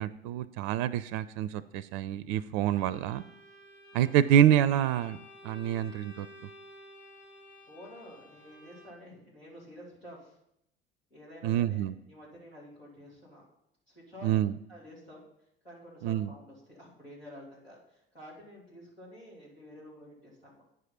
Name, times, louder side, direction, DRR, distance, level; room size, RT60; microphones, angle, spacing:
voice 1, 0.0-3.2 3.9-5.2 5.4-6.3 11.4-11.9 14.2-14.5 16.0-16.3, right 10 dB, 50° right, 16 dB, 0.4 m, -26 dB
Bowed string instrument, 2.6-9.2, left 1 dB, 55° left, 2.2 m, -53 dB
voice 2, 7.7-10.4 11.1-13.4 13.9-14.3 14.7-15.2 15.6-20.6, equal, 90° left, -7 dB, 3.1 m, -50 dB
9.5 x 4.9 x 5.6 m, 0.77 s
figure-of-eight pair, 60°, 29 cm